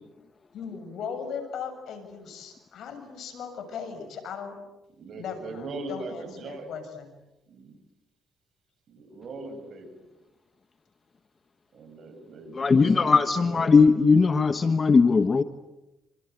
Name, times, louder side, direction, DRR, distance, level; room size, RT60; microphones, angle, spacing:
voice 1, 0.5-4.5 5.2-7.1, left 6 dB, 70° left, 7 dB, 6.9 m, -38 dB
voice 2, 4.9-6.7 7.5-7.8 8.9-10.1 11.7-13.9, right 2 dB, 55° right, 6 dB, 8.0 m, -40 dB
voice 3, 12.5-15.4, left 4 dB, 35° left, 11 dB, 1.3 m, -19 dB
27.5 x 26.5 x 8.2 m, 0.97 s
cardioid pair, 90°, 0 cm